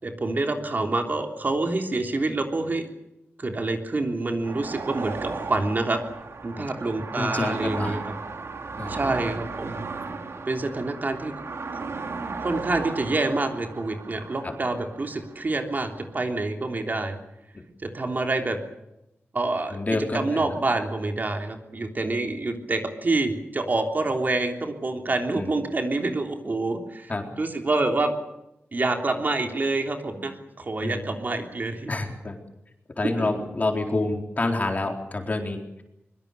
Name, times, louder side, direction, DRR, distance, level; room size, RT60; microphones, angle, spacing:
voice 1, 0.0-2.9 3.4-6.0 6.4-8.1 8.9-9.8 10.5-11.3 12.4-17.2 17.8-18.6 19.3-19.8 20.1-27.1 27.4-28.1 28.7-31.9 33.0-33.3, right 2 dB, 40° right, 4 dB, 3.3 m, -27 dB
sound 1, 4.4-16.4, right 4 dB, 75° right, 2.8 m, -36 dB
voice 2, 7.2-8.0 8.8-9.0 14.4-14.5 19.7-20.5 25.3-25.5 27.1-27.3 30.8-31.0 31.9-32.4 33.0-35.8, left 2 dB, 35° left, 3 dB, 4.2 m, -28 dB
24.0 x 23.0 x 6.9 m, 0.86 s
wide cardioid pair, 135°, 5 cm